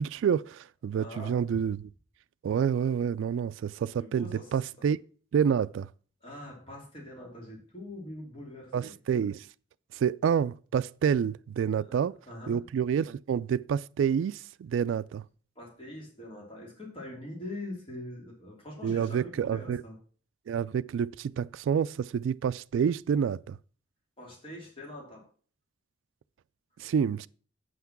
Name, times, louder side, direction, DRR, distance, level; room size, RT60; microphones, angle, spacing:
voice 1, 0.0-1.9 2.4-5.0 5.3-5.9 8.7-9.5 9.9-12.2 12.5-15.2 18.8-19.8 20.5-23.6 26.8-27.3, right 7 dB, 80° right, 0.3 m, -28 dB
voice 2, 1.0-1.4 4.0-4.5 6.2-8.9 11.9-12.6 15.6-20.0 24.2-25.2, left 1 dB, 30° left, 2.9 m, -43 dB
8.3 x 5.8 x 5.9 m
head